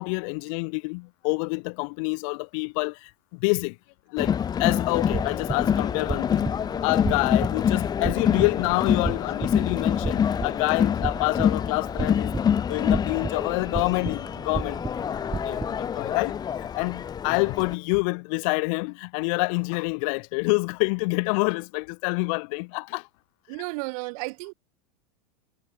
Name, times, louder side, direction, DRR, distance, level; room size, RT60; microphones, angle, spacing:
voice 1, 0.0-3.8 4.1-6.5 6.8-12.3 12.7-14.8 15.4-23.1, left 32 dB, 55° left, 0.9 m, -27 dB
Crowd, 4.2-17.7, left 8 dB, 20° left, 0.5 m, -26 dB
sound 1, 5.0-15.8, right 4 dB, 10° right, 1.6 m, -35 dB
voice 2, 23.5-24.5, right 28 dB, 55° right, 1.9 m, -33 dB
hypercardioid pair, 100°, 21 cm